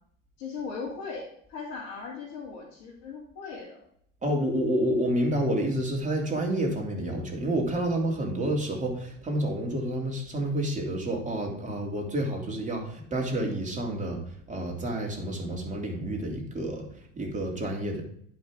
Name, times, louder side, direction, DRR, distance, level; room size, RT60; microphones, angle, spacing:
voice 1, 0.4-3.8, left 5 dB, 65° left, -7 dB, 2.9 m, -38 dB
voice 2, 4.2-14.2 14.5-16.9 17.1-18.0, right 1 dB, 20° right, 0 dB, 2.8 m, -29 dB
10.5 x 5.6 x 3.6 m, 0.66 s
hypercardioid pair, 85°, 37 cm